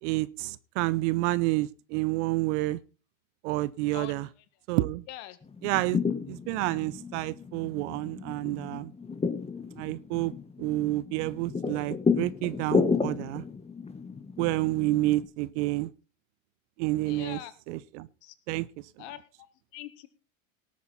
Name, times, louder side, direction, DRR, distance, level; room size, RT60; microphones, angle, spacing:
voice 1, 0.0-2.8 3.4-4.3 4.7-5.0 5.6-6.0 6.2-8.9 9.8-10.3 10.6-13.4 14.4-15.9 16.8-17.4 17.7-18.1 18.5-18.7, right 18 dB, 60° right, 0.9 m, -29 dB
voice 2, 5.1-5.4 17.0-17.5 18.2-18.3 19.0-19.5 19.7-20.1, left 14 dB, 60° left, 1.9 m, -42 dB
sound 1, 5.4-15.3, left 5 dB, 15° left, 1.6 m, -32 dB
18.5 x 8.5 x 4.2 m
hypercardioid pair, 85°, 39 cm